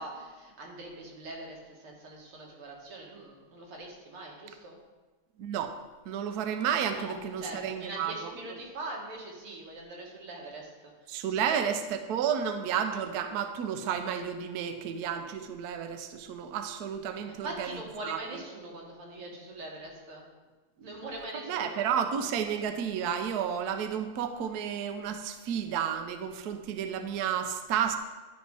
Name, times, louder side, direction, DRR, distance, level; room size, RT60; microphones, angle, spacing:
voice 1, 0.0-4.8 6.9-10.9 11.3-11.6 17.4-20.3 20.8-21.8, right 2 dB, 85° right, -2 dB, 2.6 m, -42 dB
voice 2, 5.4-5.8 6.1-8.4 11.1-17.8 18.0-18.4 20.8-20.9 21.3-28.0, right 8 dB, 70° right, 7 dB, 1.0 m, -32 dB
11.0 x 5.5 x 4.7 m, 1.3 s
omnidirectional pair, 2.3 m